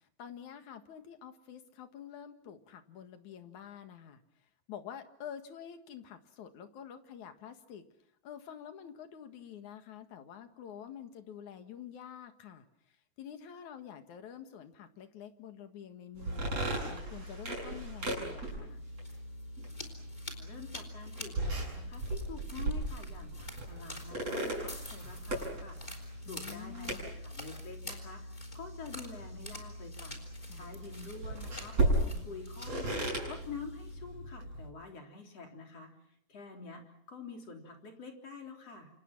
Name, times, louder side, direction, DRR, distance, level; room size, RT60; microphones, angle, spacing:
voice 1, 0.2-4.2 4.7-7.8 8.2-12.6 13.2-18.8 26.2-27.1 30.5-30.7, left 9 dB, 85° left, 8 dB, 3.2 m, -48 dB
sound 1, 16.2-34.7, right 1 dB, 55° right, 8.8 m, -37 dB
sound 2, 18.7-33.9, left 1 dB, 15° left, 3.7 m, -50 dB
voice 2, 20.3-25.8 26.3-28.2 28.5-30.1 30.5-33.0 33.3-35.9 36.3-38.9, left 5 dB, 55° left, 3 dB, 4.7 m, -47 dB
28.5 x 27.0 x 6.0 m, 0.69 s
omnidirectional pair, 3.3 m